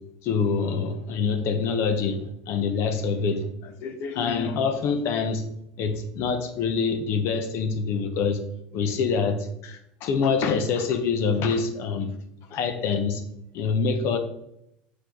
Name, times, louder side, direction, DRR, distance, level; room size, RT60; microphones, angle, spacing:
voice 1, 0.2-5.5 5.8-8.4 8.7-12.1 12.5-13.2 13.5-14.2, left 5 dB, 60° left, 8 dB, 1.0 m, -25 dB
6.5 x 4.8 x 3.9 m, 0.78 s
supercardioid pair, 100°, 5 cm